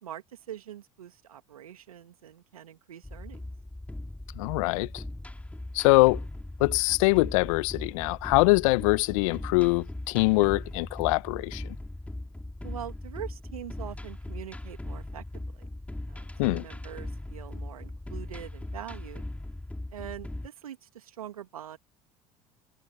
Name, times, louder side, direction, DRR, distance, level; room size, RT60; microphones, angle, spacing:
voice 1, 0.0-3.4 12.6-15.2 15.5-15.7 16.1-19.2 19.9-21.8, right 10 dB, 80° right, 2.6 m, -43 dB
sound 1, 3.0-20.5, left 1 dB, 5° left, 3.6 m, -39 dB
voice 2, 4.4-5.0 5.7-6.2 6.6-11.6 16.4-16.7, left 25 dB, 65° left, 1.1 m, -23 dB
hypercardioid pair, 70°, 18 cm